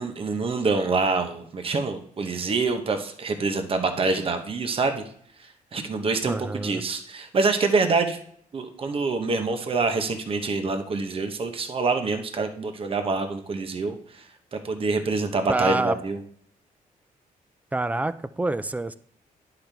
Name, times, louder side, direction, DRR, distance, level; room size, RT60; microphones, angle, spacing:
voice 1, 0.0-5.0 5.4-8.2 8.5-16.2, right 3 dB, 40° right, 6 dB, 1.0 m, -26 dB
voice 2, 6.3-6.8 15.5-16.0 17.7-19.0, right 2 dB, 10° right, 14 dB, 0.4 m, -27 dB
10.5 x 5.8 x 3.4 m, 0.64 s
cardioid pair, 130°, 15 cm